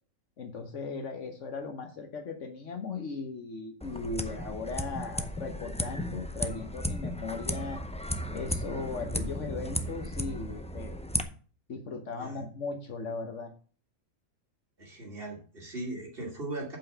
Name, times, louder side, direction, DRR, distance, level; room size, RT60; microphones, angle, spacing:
voice 1, 0.4-7.8 8.3-11.0 11.7-13.5, left 4 dB, 65° left, 4 dB, 1.4 m, -37 dB
sound 1, 3.8-11.2, left 1 dB, 10° left, 0.3 m, -35 dB
voice 2, 14.8-16.8, right 2 dB, 45° right, 0 dB, 2.8 m, -38 dB
7.5 x 5.7 x 6.8 m, 0.40 s
omnidirectional pair, 1.4 m